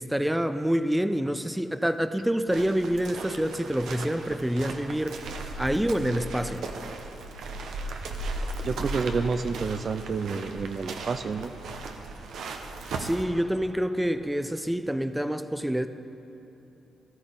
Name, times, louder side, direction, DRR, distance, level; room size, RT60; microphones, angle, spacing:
voice 1, 0.0-5.2 5.6-6.7 13.0-15.9, equal, 5° right, 11 dB, 0.6 m, -27 dB
sound 1, 2.5-13.2, right 2 dB, 75° right, 0.9 m, -37 dB
voice 2, 8.6-11.5, right 5 dB, 55° right, 9 dB, 0.5 m, -29 dB
15.5 x 13.5 x 3.9 m, 3.0 s
hypercardioid pair, 45°, 0 cm